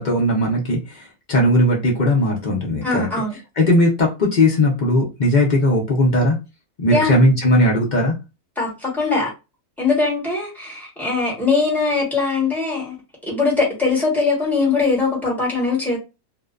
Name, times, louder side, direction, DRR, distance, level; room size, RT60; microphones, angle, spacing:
voice 1, 0.0-3.1 3.6-6.4 6.8-8.1, left 1 dB, 55° left, 0.5 m, -18 dB
voice 2, 2.8-3.4 6.9-7.2 8.6-9.3 9.8-13.0 13.3-16.0, left 3 dB, ahead, 1.0 m, -21 dB
2.6 x 2.1 x 2.3 m
omnidirectional pair, 1.6 m